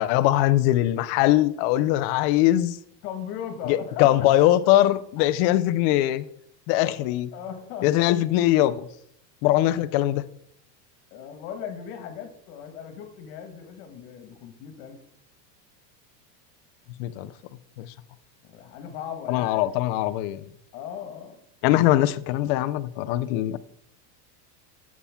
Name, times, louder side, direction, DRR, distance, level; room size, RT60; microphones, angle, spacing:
voice 1, 0.0-2.8 3.7-6.3 6.7-7.3 7.8-8.9 9.4-10.2 17.0-17.3 17.8-17.9 19.3-20.4 21.6-23.6, left 14 dB, 40° left, 0.4 m, -21 dB
voice 2, 3.0-4.5 5.2-5.3 7.3-8.1 11.1-15.0 18.4-19.6 20.7-21.4, left 8 dB, 60° left, 1.6 m, -38 dB
11.0 x 7.3 x 3.5 m
supercardioid pair, 150°, 50 cm